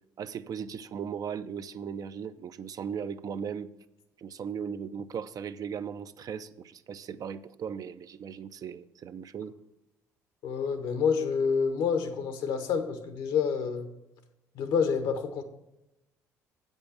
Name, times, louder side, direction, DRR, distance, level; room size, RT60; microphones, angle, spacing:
voice 1, 0.2-3.7 4.2-9.6, right 7 dB, 45° right, 12 dB, 0.5 m, -37 dB
voice 2, 10.4-13.9 14.5-15.4, left 6 dB, 65° left, 8 dB, 1.1 m, -28 dB
8.1 x 5.4 x 7.0 m, 0.89 s
hypercardioid pair, 55°, 8 cm